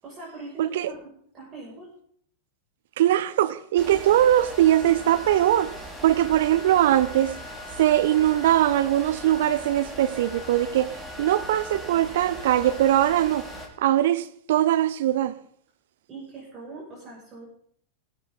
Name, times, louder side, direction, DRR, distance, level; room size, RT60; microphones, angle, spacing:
voice 1, 0.0-1.9 16.1-17.5, right 2 dB, 25° right, 6.3 m, -41 dB
voice 2, 0.6-0.9 3.0-5.7 6.0-7.4 7.8-13.5 13.8-15.3, right 12 dB, 55° right, 0.7 m, -21 dB
sound 1, 3.8-13.7, equal, ahead, 3.0 m, -39 dB
17.5 x 13.0 x 3.9 m
figure-of-eight pair, 90°, 0 cm